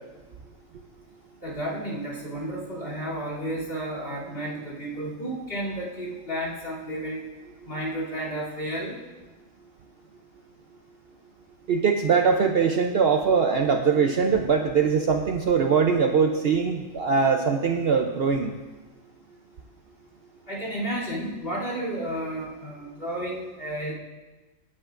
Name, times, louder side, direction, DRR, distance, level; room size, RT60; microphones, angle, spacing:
voice 1, 1.4-7.2 7.6-8.9 20.5-23.9, right 1 dB, 45° left, -5 dB, 3.1 m, -32 dB
voice 2, 11.7-18.5, right 5 dB, 60° right, 5 dB, 0.7 m, -22 dB
17.5 x 8.5 x 2.5 m, 1.2 s
omnidirectional pair, 1.4 m